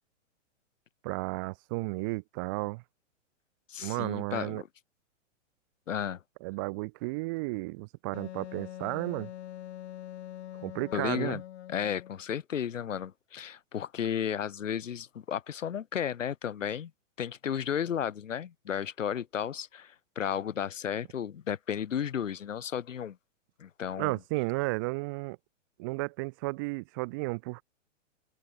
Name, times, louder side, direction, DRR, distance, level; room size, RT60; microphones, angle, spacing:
voice 1, 1.0-2.8 3.8-4.6 6.4-9.3 10.6-11.4 24.0-25.4 25.8-27.6, right 26 dB, 20° right, 0.5 m, -33 dB
voice 2, 3.7-4.7 5.9-6.2 10.9-11.4 11.7-16.9 17.2-23.2 23.6-24.2, left 8 dB, 85° left, 3.9 m, -33 dB
Wind instrument woodwind instrument, 8.1-12.2, left 12 dB, 60° left, 3.0 m, -44 dB
hypercardioid pair, 150°, 37 cm